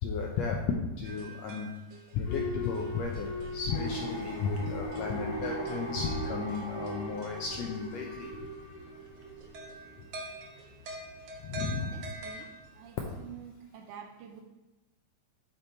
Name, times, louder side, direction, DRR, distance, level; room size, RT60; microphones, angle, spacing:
voice 1, 0.0-1.7 2.1-8.3 11.4-12.0, left 5 dB, 80° left, 1 dB, 1.5 m, -34 dB
sound 1, 1.0-13.2, right 2 dB, 65° right, 1.9 m, -47 dB
Boat Water vehicle / Alarm, 2.2-12.9, equal, 50° left, 1.5 m, -42 dB
sound 2, 3.7-10.0, equal, 15° left, 1.2 m, -41 dB
voice 2, 11.8-14.4, right 8 dB, 80° right, 4 dB, 2.1 m, -48 dB
8.5 x 4.5 x 4.4 m, 1.0 s
omnidirectional pair, 3.7 m